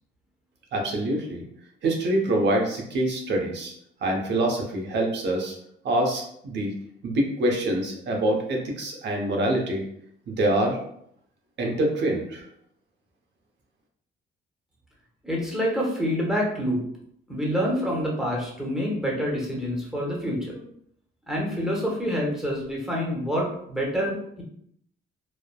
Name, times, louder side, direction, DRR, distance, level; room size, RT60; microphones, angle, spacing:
voice 1, 0.7-1.4 1.8-3.7 4.0-5.5 5.8-6.7 7.0-9.8 10.3-10.8 11.6-12.4, right 1 dB, 60° right, 1 dB, 0.8 m, -25 dB
voice 2, 15.2-16.8 17.3-20.6 21.3-24.4, equal, 5° right, -3 dB, 0.9 m, -27 dB
3.1 x 2.0 x 2.2 m, 0.70 s
cardioid pair, 90°, 20 cm